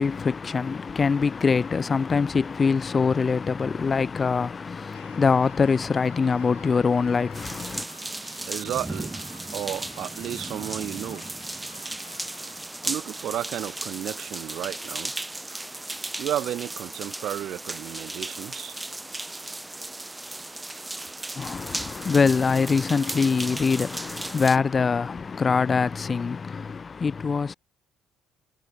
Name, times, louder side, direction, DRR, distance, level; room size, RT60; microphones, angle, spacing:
voice 1, 0.0-7.9 21.4-27.5, left 5 dB, 35° left, 0.9 m, -24 dB
Keyboard (musical), 4.9-12.7, left 8 dB, 85° left, 3.6 m, -53 dB
sound 1, 7.3-24.6, right 2 dB, 15° right, 2.4 m, -35 dB
voice 2, 8.4-9.2 9.5-11.3 12.8-15.1 16.1-18.8, right 12 dB, 55° right, 2.0 m, -32 dB
figure-of-eight pair, 50°, 0 cm